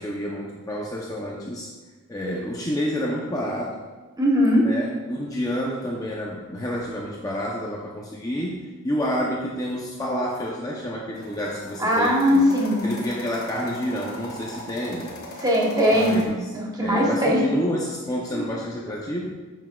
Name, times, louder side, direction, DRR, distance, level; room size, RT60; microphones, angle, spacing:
voice 1, 0.0-1.7 2.1-3.8 4.6-12.5 12.8-15.2 15.9-16.5 16.8-19.3, equal, 15° left, -3 dB, 0.6 m, -29 dB
voice 2, 4.2-4.7 11.8-12.9 15.4-17.4 18.3-18.5, equal, 15° right, -3 dB, 1.1 m, -20 dB
sound 1, 11.1-16.3, left 1 dB, 45° left, 1.1 m, -39 dB
9.1 x 6.1 x 2.3 m, 1.3 s
head